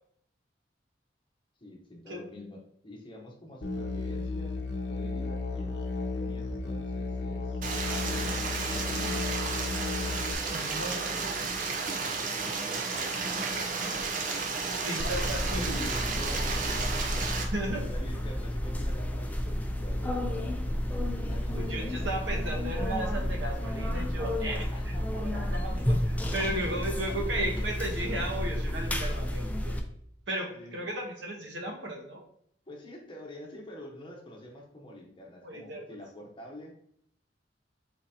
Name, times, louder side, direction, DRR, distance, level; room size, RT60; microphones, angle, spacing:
voice 1, 1.6-4.6 4.9-7.7 8.1-9.4 10.4-11.3 12.2-14.9 15.6-20.8 21.2-22.2 24.7-25.9 26.3-27.3 30.5-30.8 32.7-36.7, left 1 dB, 30° left, 0 dB, 0.9 m, -47 dB
Musical instrument, 3.6-10.3, left 3 dB, 80° left, 0.7 m, -34 dB
Stream, 7.6-17.4, right 4 dB, 45° right, 0.6 m, -32 dB
voice 2, 10.5-11.1 14.8-15.9 17.5-17.8 21.5-24.9 25.2-26.0 26.3-29.8 30.3-32.2 35.4-35.9, right 1 dB, 80° right, 1 dB, 1.1 m, -35 dB
sound 1, 15.0-29.8, left 1 dB, 10° left, 0.4 m, -31 dB
4.1 x 3.8 x 2.8 m, 0.67 s
head